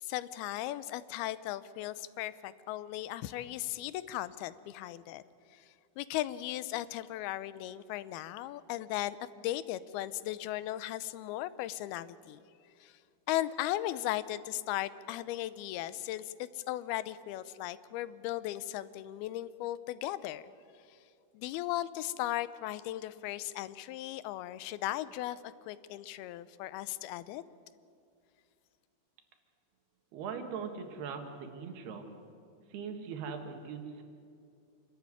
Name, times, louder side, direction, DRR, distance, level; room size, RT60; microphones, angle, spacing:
voice 1, 0.0-5.2 5.5-5.7 6.0-12.4 12.8-13.0 13.3-20.4 21.3-27.4, left 14 dB, 85° left, 16 dB, 2.6 m, -37 dB
voice 2, 30.1-32.1 32.7-34.0, right 6 dB, 85° right, 5 dB, 3.8 m, -40 dB
26.5 x 13.0 x 9.7 m, 2.5 s
omnidirectional pair, 4.5 m